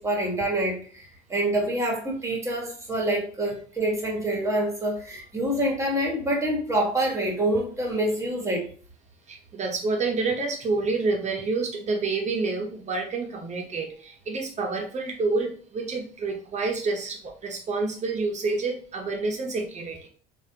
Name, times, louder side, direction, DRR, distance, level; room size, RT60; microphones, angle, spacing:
voice 1, 0.0-8.7, right 1 dB, 15° right, -1 dB, 1.4 m, -26 dB
voice 2, 9.3-20.1, right 3 dB, 35° right, 2 dB, 0.8 m, -28 dB
3.3 x 2.5 x 2.8 m, 0.43 s
hypercardioid pair, 70°, 19 cm